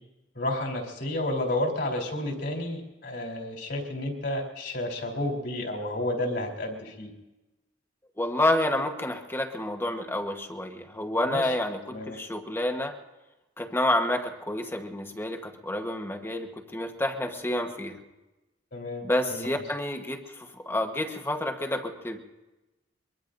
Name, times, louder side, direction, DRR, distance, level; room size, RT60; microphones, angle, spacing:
voice 1, 0.4-7.1 11.3-11.5 11.9-12.2 18.7-19.0 19.3-19.5, left 1 dB, 65° left, -1 dB, 3.7 m, -31 dB
voice 2, 8.2-11.8 12.1-12.9 13.6-18.0 19.0-20.2 20.6-22.2, left 1 dB, 15° left, 4 dB, 1.2 m, -29 dB
23.5 x 23.0 x 2.6 m, 1.1 s
head